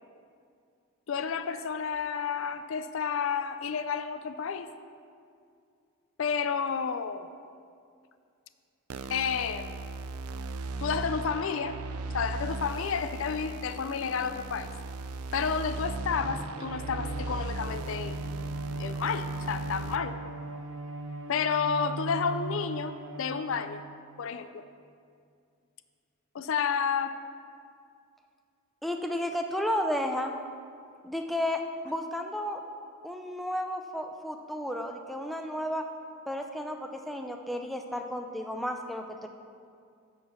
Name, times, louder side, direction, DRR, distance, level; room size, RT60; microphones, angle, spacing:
voice 1, 1.1-4.7 6.2-7.3 9.1-9.7 10.8-11.8 12.1-14.7 15.3-18.1 18.8-20.1 21.3-23.8 24.2-24.6 26.3-27.2, left 6 dB, 65° left, 11 dB, 0.4 m, -31 dB
sound 1, 8.9-20.0, right 3 dB, 85° right, 0.4 m, -38 dB
Bowed string instrument, 15.8-24.2, right 2 dB, 60° right, 0.8 m, -38 dB
voice 2, 28.8-30.3 31.0-32.6 33.0-35.8 36.3-39.3, left 1 dB, ahead, 4 dB, 0.5 m, -32 dB
10.5 x 4.6 x 7.0 m, 2.3 s
head